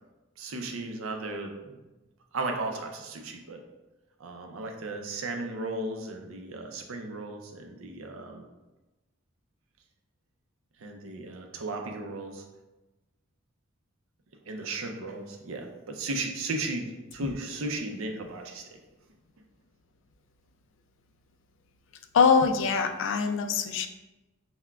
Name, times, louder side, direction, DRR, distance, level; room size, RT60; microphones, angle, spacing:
voice 1, 0.4-1.5 2.3-3.6 4.2-8.4 10.8-12.4 14.5-18.8, right 2 dB, 75° right, 4 dB, 0.5 m, -35 dB
voice 2, 22.1-23.9, left 5 dB, 60° left, 7 dB, 0.3 m, -23 dB
5.7 x 2.1 x 2.3 m, 1.1 s
head